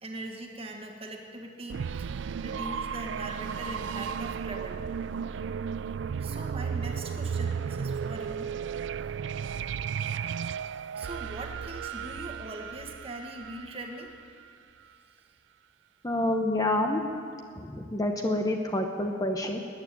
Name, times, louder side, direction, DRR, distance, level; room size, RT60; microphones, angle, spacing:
voice 1, 0.0-4.9 6.2-8.5 9.4-9.6 11.0-14.1, right 1 dB, 35° right, 2 dB, 1.7 m, -41 dB
sound 1, 1.7-14.4, right 7 dB, 80° right, 0.3 m, -34 dB
voice 2, 16.0-17.1 17.5-19.6, left 1 dB, 20° left, 3 dB, 1.0 m, -28 dB
14.0 x 9.5 x 9.9 m, 2.2 s
head